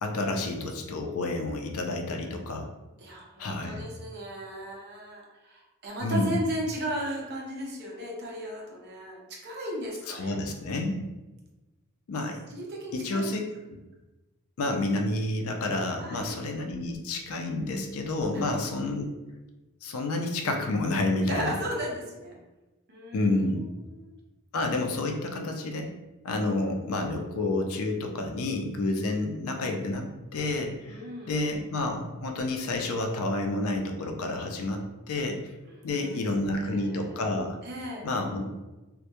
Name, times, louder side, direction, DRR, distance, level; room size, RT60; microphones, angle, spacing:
voice 1, 0.0-2.7 3.4-3.9 6.0-6.4 10.1-11.1 12.1-12.4 12.9-13.4 14.6-19.1 19.8-21.6 23.1-23.6 24.5-25.9 26.2-35.4 35.8-37.6 38.0-38.5, left 2 dB, 75° left, 4 dB, 0.4 m, -29 dB
voice 2, 3.0-10.4 12.5-13.4 16.0-16.4 18.3-18.6 21.2-22.4 22.9-23.6 23.9-24.1 25.3-25.5 30.9-31.3 35.7-37.2 37.6-38.1, equal, 45° right, -2 dB, 0.5 m, -36 dB
2.2 x 2.1 x 2.8 m, 1.1 s
head